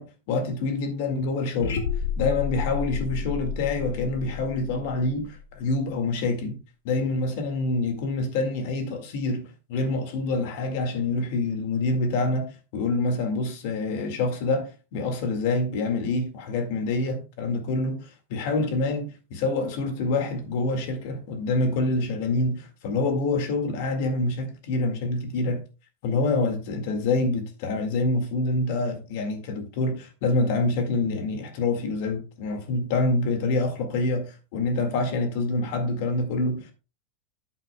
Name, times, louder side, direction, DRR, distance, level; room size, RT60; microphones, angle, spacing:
voice 1, 0.0-1.8 2.2-6.6 6.8-25.6 26.0-36.7, left 2 dB, 45° left, 1.9 m, -26 dB
sound 1, 1.6-5.7, left 7 dB, 80° left, 1.9 m, -31 dB
11.5 x 8.1 x 2.3 m
supercardioid pair, 175°, 0 cm